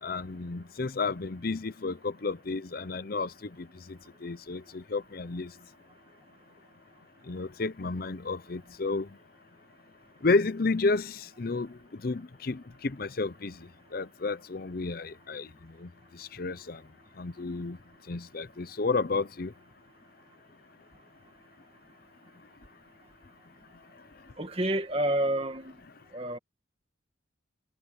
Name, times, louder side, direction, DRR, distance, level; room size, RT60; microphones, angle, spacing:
voice 1, 0.0-5.5 7.3-9.1 10.2-13.6 13.9-15.5 15.8-15.9 16.2-16.8 17.2-17.8 18.1-19.5, left 3 dB, 45° left, 0.6 m, -31 dB
voice 2, 24.4-25.7 26.1-26.4, right 1 dB, 30° right, 2.1 m, -29 dB
head